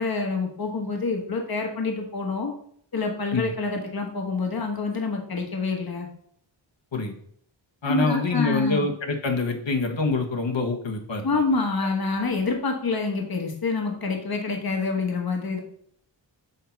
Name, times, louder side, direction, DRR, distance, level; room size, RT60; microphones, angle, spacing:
voice 1, 0.0-2.5 2.9-6.1 7.8-8.9 11.2-15.6, left 4 dB, 50° left, 3 dB, 1.3 m, -27 dB
voice 2, 7.8-11.3, left 3 dB, 70° left, 1 dB, 1.4 m, -25 dB
6.5 x 4.5 x 5.8 m, 0.63 s
wide cardioid pair, 70°, 46 cm